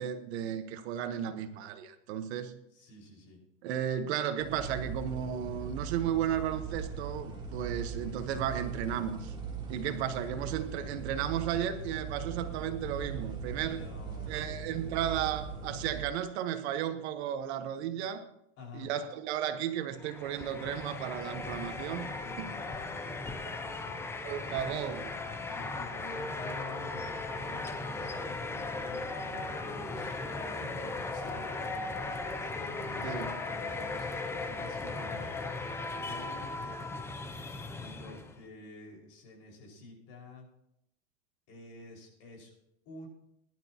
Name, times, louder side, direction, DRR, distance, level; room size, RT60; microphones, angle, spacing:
voice 1, 0.0-2.5 3.6-9.3 9.7-13.8 14.3-18.2 18.7-22.1 22.4-22.5 23.4-23.6 24.2-25.1 33.0-33.3, right 10 dB, 60° right, 8 dB, 1.3 m, -34 dB
voice 2, 2.7-3.4 13.6-14.4 18.6-18.9 22.0-24.0 24.4-24.7 25.5-33.1 33.5-35.4 36.1-37.0 37.8-40.5 41.5-42.5 42.9-43.1, left 2 dB, 40° left, -1 dB, 5.2 m, -50 dB
sound 1, 4.4-16.0, right 5 dB, 15° right, 3.0 m, -40 dB
sound 2, 19.9-38.4, left 3 dB, 5° left, 0.5 m, -37 dB
19.5 x 11.5 x 2.9 m, 0.77 s
supercardioid pair, 150°, 37 cm